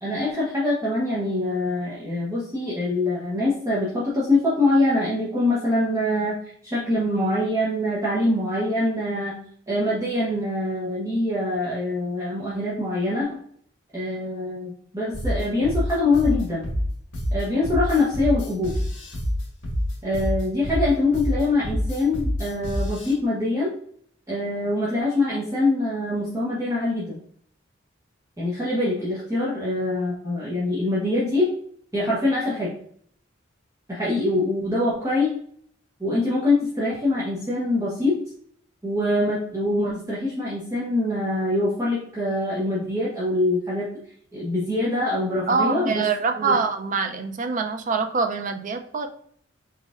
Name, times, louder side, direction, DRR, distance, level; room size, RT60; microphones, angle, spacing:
voice 1, 0.0-6.4 6.6-9.4 9.7-13.3 13.9-16.7 17.3-18.8 20.0-23.7 24.3-27.2 28.4-31.5 31.9-32.7 33.9-35.3 36.0-38.2 38.8-43.9 44.3-46.1 46.4-46.6, left 2 dB, 15° right, -8 dB, 0.9 m, -24 dB
sound 1, 15.1-23.1, equal, 65° left, 1.4 m, -27 dB
voice 2, 45.5-49.1, right 4 dB, 40° right, 6 dB, 0.4 m, -24 dB
4.0 x 4.0 x 2.4 m, 0.62 s
head